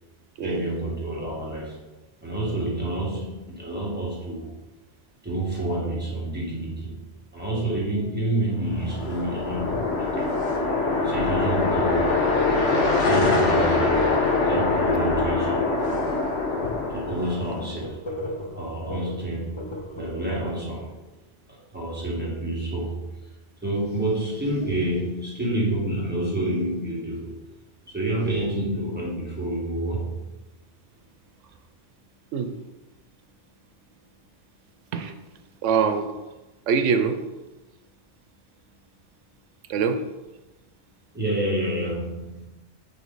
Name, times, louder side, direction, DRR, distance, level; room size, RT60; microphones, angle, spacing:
voice 1, 0.4-1.8 2.2-4.6 5.2-7.0 7.3-10.4 10.9-12.2 13.0-16.1 16.9-18.0 18.5-19.6 20.0-21.0 21.5-23.1 23.6-27.5 27.9-30.2 41.1-42.5, right 1 dB, 10° right, -6 dB, 1.7 m, -28 dB
sound 1, 8.7-17.7, left 3 dB, 75° left, 1.3 m, -23 dB
sound 2, 15.5-15.7 16.2-16.3 16.6-16.7 17.1-20.4, left 1 dB, 30° left, 0.7 m, -37 dB
voice 2, 35.6-36.1 36.7-37.2 39.7-40.0, right 6 dB, 90° right, 8 dB, 1.0 m, -23 dB
5.1 x 5.0 x 3.9 m, 1.1 s
omnidirectional pair, 1.2 m